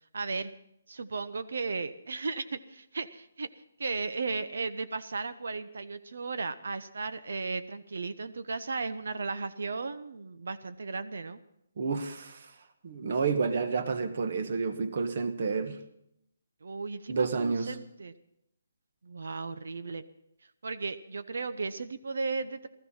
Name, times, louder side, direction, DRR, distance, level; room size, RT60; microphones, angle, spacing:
voice 1, 0.1-0.5 0.9-3.5 3.8-11.4 16.6-18.1 19.0-20.0 20.6-22.7, right 4 dB, 70° right, 12 dB, 0.8 m, -35 dB
voice 2, 11.8-12.5 12.8-15.8 17.1-17.7, right 5 dB, 45° right, 9 dB, 1.4 m, -30 dB
16.0 x 14.0 x 5.7 m, 0.77 s
hypercardioid pair, 175°, 0 cm